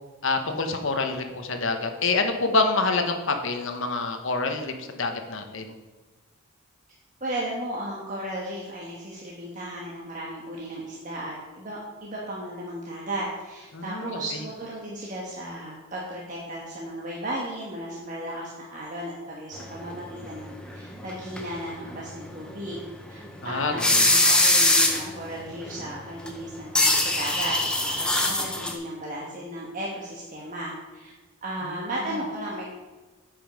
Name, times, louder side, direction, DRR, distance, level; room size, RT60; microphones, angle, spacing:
voice 1, 0.2-5.7 13.7-14.2 23.4-24.0, left 3 dB, 60° left, 6 dB, 1.0 m, -27 dB
voice 2, 7.2-22.8 23.1-31.1 31.4-32.7, right 1 dB, 35° right, -4 dB, 1.3 m, -35 dB
sound 1, 19.9-21.1 21.4-21.5 21.9-22.0 22.5-22.6 23.2-23.5 23.8-25.2 25.7-25.9 26.3-26.4 26.7-28.7, left 2 dB, 5° left, 0.7 m, -22 dB
9.0 x 5.4 x 5.2 m, 1.3 s
head